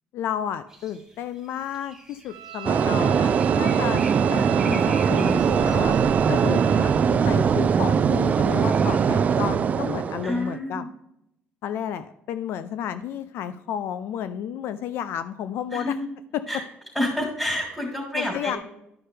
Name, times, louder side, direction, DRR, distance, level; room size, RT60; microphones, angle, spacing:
voice 1, 0.1-4.0 4.3-6.0 6.3-10.9 11.6-16.0 16.3-16.4 18.1-18.6, left 9 dB, 70° left, 12 dB, 0.4 m, -32 dB
sound 1, 0.7-9.1, right 1 dB, 10° right, 2.2 m, -45 dB
Bowed string instrument, 2.3-7.2, right 13 dB, 80° right, 1.3 m, -37 dB
sound 2, 2.6-10.5, right 6 dB, 40° right, 0.4 m, -21 dB
voice 2, 10.2-10.9 15.7-16.1 16.5-16.6 16.9-18.6, left 1 dB, 5° left, -1 dB, 3.3 m, -28 dB
11.5 x 5.6 x 3.3 m, 0.80 s
cardioid pair, 110°, 4 cm